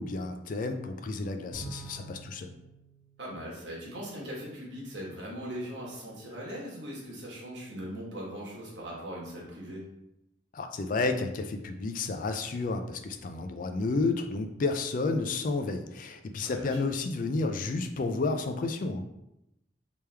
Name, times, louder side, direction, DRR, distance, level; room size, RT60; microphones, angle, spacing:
voice 1, 0.0-2.5 10.5-19.0, left 3 dB, 45° left, 7 dB, 0.3 m, -31 dB
Bowed string instrument, 1.5-4.1, right 3 dB, 55° right, 0.8 m, -47 dB
voice 2, 3.2-9.8 16.4-16.8, equal, 70° right, -4 dB, 1.3 m, -40 dB
3.3 x 3.0 x 3.3 m, 0.86 s
head